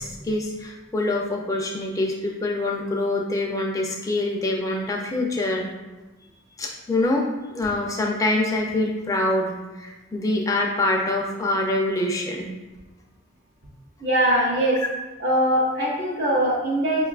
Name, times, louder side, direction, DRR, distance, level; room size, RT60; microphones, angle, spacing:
voice 1, 0.0-5.7 6.6-7.3 7.5-12.5, left 2 dB, 15° left, -1 dB, 0.3 m, -25 dB
voice 2, 14.0-14.8 15.2-17.1, right 1 dB, 55° right, -4 dB, 0.5 m, -21 dB
5.2 x 2.3 x 2.3 m, 1.2 s
head